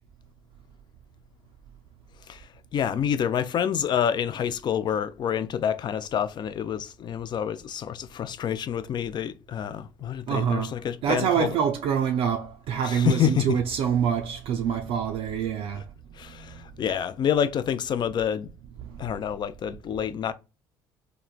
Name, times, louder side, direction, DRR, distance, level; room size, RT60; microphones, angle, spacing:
voice 1, 2.7-11.5 12.8-13.6 16.2-18.5 19.0-20.3, left 9 dB, 40° left, 0.4 m, -27 dB
voice 2, 10.3-10.8 11.0-15.9 16.2-16.7 18.8-19.0, right 8 dB, 55° right, 0.4 m, -26 dB
3.1 x 2.0 x 2.4 m
hypercardioid pair, 60°, 11 cm